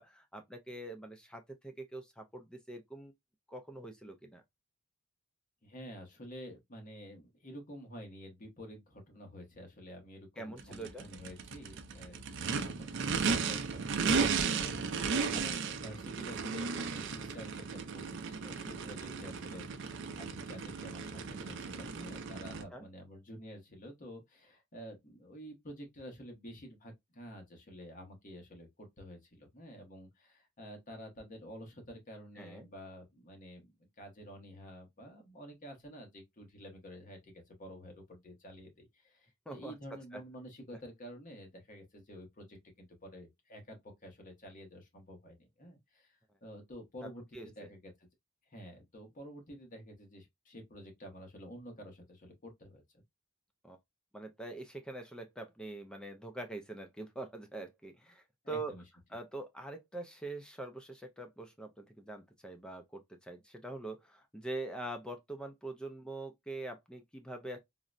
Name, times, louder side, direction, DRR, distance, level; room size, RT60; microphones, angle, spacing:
voice 1, 0.0-3.1 3.5-4.4 10.4-11.1 22.7-22.8 32.4-32.7 39.5-39.7 47.3-47.7 53.6-53.8 54.1-58.7 59.1-67.6, right 2 dB, 5° left, 0.3 m, -44 dB
voice 2, 5.6-48.1 48.5-53.0 58.4-58.8, equal, 40° left, 1.0 m, -50 dB
Race car auto racing / Idling / Accelerating revving vroom, 10.6-22.6, right 5 dB, 60° right, 0.4 m, -35 dB
3.8 x 2.1 x 2.4 m
head